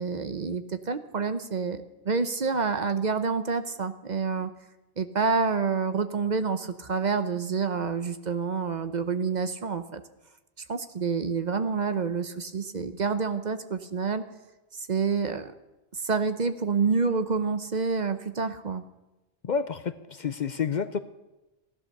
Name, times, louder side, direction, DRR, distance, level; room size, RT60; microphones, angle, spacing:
voice 1, 0.0-4.5 5.0-10.0 10.7-14.2 14.7-15.5 15.9-18.8, right 5 dB, 45° right, 10 dB, 0.8 m, -28 dB
voice 2, 19.4-21.0, left 6 dB, 50° left, 12 dB, 0.7 m, -29 dB
15.5 x 11.5 x 6.5 m, 1.0 s
omnidirectional pair, 1.1 m